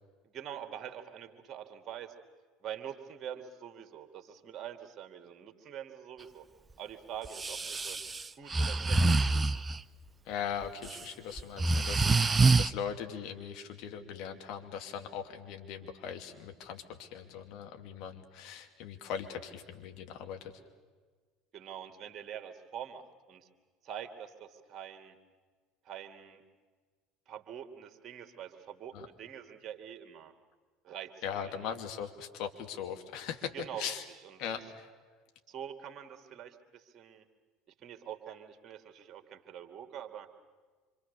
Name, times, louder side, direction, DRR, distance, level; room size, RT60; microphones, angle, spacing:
voice 1, 0.2-2.1 2.6-6.5 6.8-8.0 8.4-9.4 21.5-23.5 23.8-25.2 25.8-26.4 27.3-30.3 30.8-31.8 33.5-33.9 34.2-34.6 35.5-37.2 37.8-40.3, right 9 dB, 40° right, 6 dB, 2.5 m, -45 dB
Breathing, 7.3-9.8 10.6-11.0 11.4-12.7, right 3 dB, 20° right, 0.7 m, -26 dB
voice 2, 10.2-20.5 28.9-29.1 31.2-33.5 33.8-34.0 34.4-34.9, left 8 dB, 55° left, 5 dB, 2.6 m, -40 dB
26.5 x 26.5 x 6.8 m, 1.5 s
figure-of-eight pair, 65°, 0 cm